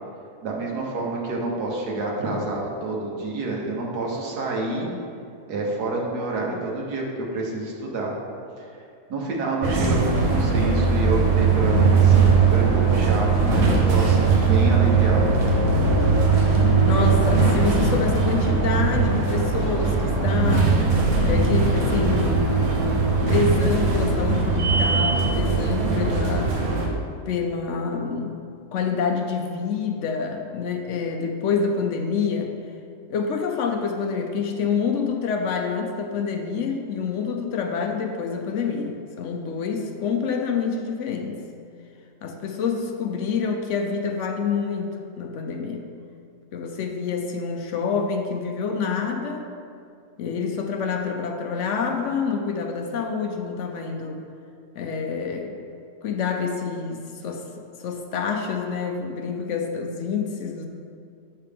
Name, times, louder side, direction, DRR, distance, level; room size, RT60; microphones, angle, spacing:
voice 1, 0.4-4.9 5.5-8.1 8.6-8.8 9.1-15.3, right 2 dB, 85° right, -2 dB, 1.6 m, -28 dB
sound 1, 9.6-26.9, right 4 dB, 65° right, 1.2 m, -20 dB
voice 2, 16.8-20.9 21.2-22.6 23.1-26.5 27.3-28.3 28.7-32.5 33.1-41.4 42.2-45.9 46.5-49.4 50.2-54.2 54.7-55.5 56.0-57.4 57.8-60.7, left 5 dB, 65° left, 3 dB, 0.8 m, -27 dB
7.0 x 5.7 x 3.5 m, 2.4 s
omnidirectional pair, 1.7 m